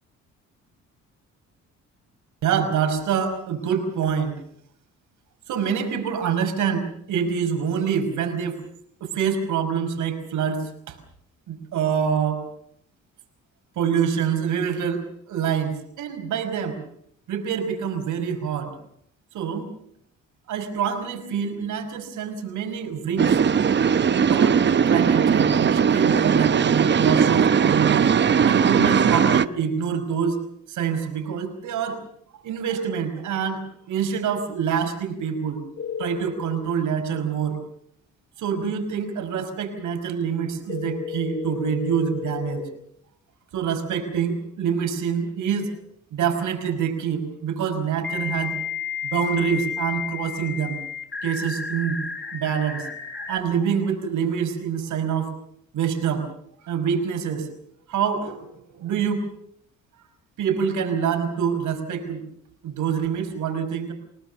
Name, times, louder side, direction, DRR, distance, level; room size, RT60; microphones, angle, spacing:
voice 1, 2.4-4.4 5.5-8.6 9.0-11.0 11.5-12.4 13.8-16.8 17.3-18.8 19.3-19.7 20.5-23.4 24.1-28.1 28.4-30.4 30.7-32.0 32.4-35.6 36.0-37.6 38.4-42.6 43.5-45.7 46.1-48.6 49.0-50.8 51.2-52.0 52.3-52.9 53.3-55.3 55.7-56.3 56.6-57.5 57.9-59.3 60.4-62.2 62.6-63.9, right 7 dB, 80° right, 7 dB, 5.2 m, -26 dB
sound 1, 23.2-29.5, right 7 dB, 35° right, 0.8 m, -19 dB
sound 2, 35.8-36.6 40.7-42.6 45.3-45.4 48.0-53.4, left 7 dB, 40° left, 4.5 m, -32 dB
29.0 x 18.5 x 6.8 m, 0.69 s
cardioid pair, 90°, 30 cm